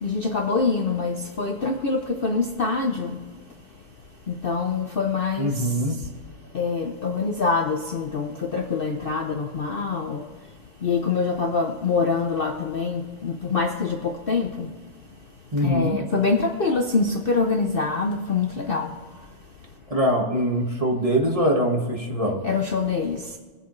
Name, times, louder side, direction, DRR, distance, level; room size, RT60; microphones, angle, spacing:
voice 1, 0.0-3.2 4.3-5.8 6.5-10.3 10.8-14.7 15.6-18.9 22.4-23.3, left 4 dB, 70° left, 0.5 m, -25 dB
voice 2, 5.4-6.0 15.5-16.0 19.9-22.4, equal, 20° right, 1.5 m, -23 dB
21.5 x 7.8 x 3.2 m
omnidirectional pair, 2.1 m